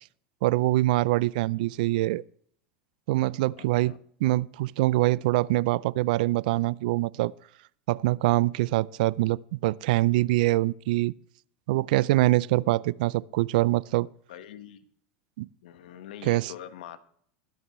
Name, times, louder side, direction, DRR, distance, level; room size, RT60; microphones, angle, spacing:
voice 1, 0.4-2.2 3.1-3.9 4.2-7.3 7.9-11.1 11.7-14.1 15.4-15.5 16.2-16.5, right 18 dB, 75° right, 0.4 m, -24 dB
voice 2, 3.6-4.0 14.3-14.9 15.6-17.0, left 10 dB, 85° left, 1.2 m, -44 dB
21.5 x 8.7 x 3.1 m
supercardioid pair, 120°, 5 cm